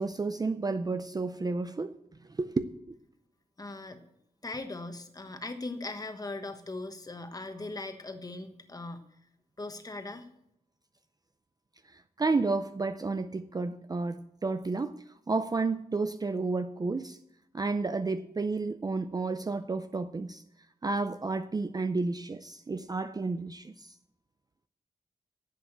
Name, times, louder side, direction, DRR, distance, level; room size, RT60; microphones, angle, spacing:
voice 1, 0.0-2.0 2.4-2.7 11.9-17.2 17.5-20.4 20.8-23.9, right 3 dB, 25° right, 0.5 m, -31 dB
voice 2, 3.6-4.0 4.4-9.0 9.6-10.2, left 2 dB, 25° left, 1.2 m, -39 dB
11.0 x 7.9 x 8.0 m
wide cardioid pair, 155°, 16 cm